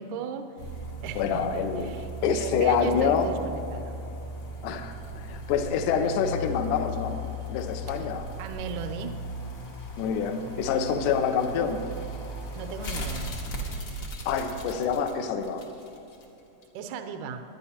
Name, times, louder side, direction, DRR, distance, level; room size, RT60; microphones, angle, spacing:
voice 1, 0.0-4.0 7.9-8.1 8.4-9.2 12.5-13.3 16.7-17.4, right 5 dB, 75° right, 6 dB, 1.9 m, -37 dB
sound 1, 0.6-16.2 16.6-16.7, equal, 55° left, 1.1 m, -37 dB
voice 2, 1.2-1.9 2.2-3.3 4.6-7.2 7.5-8.3 10.0-11.9 14.3-15.7, left 6 dB, 80° left, 7 dB, 2.2 m, -26 dB
21.0 x 10.0 x 2.9 m, 2.9 s
omnidirectional pair, 4.0 m